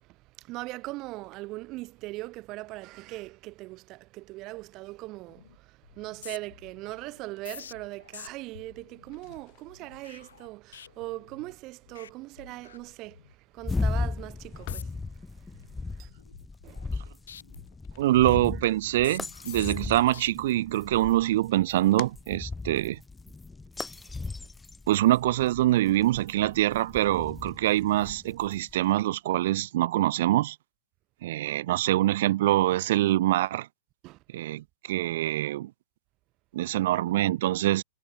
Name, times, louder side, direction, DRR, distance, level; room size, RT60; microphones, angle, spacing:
voice 1, 0.0-16.1 16.6-17.0 17.9-18.0 24.0-24.5 34.0-34.2, right 20 dB, 40° right, 3.1 m, -41 dB
sound 1, 5.3-5.6 5.8-11.6 11.9-12.1 12.4-13.3 13.7-14.0 14.5-15.1 15.5-17.0 17.3-20.3 20.8-21.2, left 8 dB, 85° left, 3.1 m, -48 dB
sound 2, 9.0-19.0 19.3-20.2 20.5-23.2, left 31 dB, 45° left, 6.3 m, -52 dB
sound 3, 13.6-28.7, left 3 dB, 10° left, 2.5 m, -37 dB
voice 2, 18.0-23.0 24.9-30.5 31.2-33.7 34.3-34.6 34.9-35.7 36.5-37.8, right 15 dB, 60° right, 0.8 m, -24 dB
hypercardioid pair, 130°, 0 cm